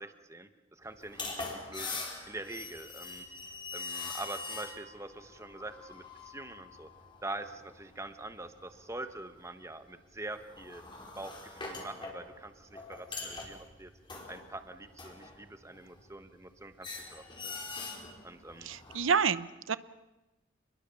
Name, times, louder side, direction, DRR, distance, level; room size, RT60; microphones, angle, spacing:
voice 1, 0.0-3.2 3.7-6.9 7.2-10.8 11.2-13.9 14.3-17.7 18.2-18.7, right 2 dB, 15° right, 8 dB, 1.3 m, -44 dB
sound 1, 0.9-8.9 9.2-9.5 10.2-16.5 16.8-19.1, left 3 dB, 25° left, 4.9 m, -43 dB
voice 2, 18.6-19.8, right 6 dB, 90° right, 15 dB, 0.8 m, -29 dB
29.0 x 21.5 x 7.1 m, 1.1 s
head